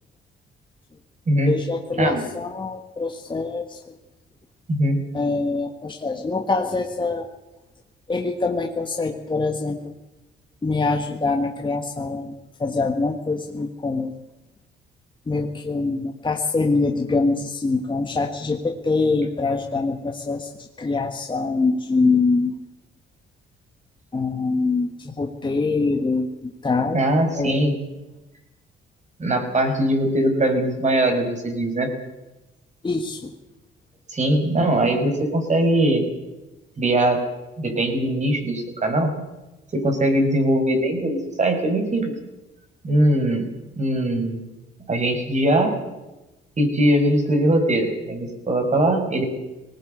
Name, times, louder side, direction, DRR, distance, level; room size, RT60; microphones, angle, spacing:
voice 1, 1.5-3.9 5.1-7.3 8.1-9.9 10.6-14.1 15.3-22.6 24.1-27.0 27.4-27.6 32.8-33.3, left 3 dB, 25° left, 3 dB, 1.7 m, -24 dB
voice 2, 26.9-27.7 29.2-31.9 34.1-36.1 36.8-37.2 37.6-39.1 39.7-42.1 42.8-43.5 43.8-44.4 44.9-45.8 46.6-49.2, right 1 dB, 35° right, 5 dB, 5.8 m, -21 dB
20.0 x 18.5 x 8.1 m, 1.0 s
cardioid pair, 90°, 20 cm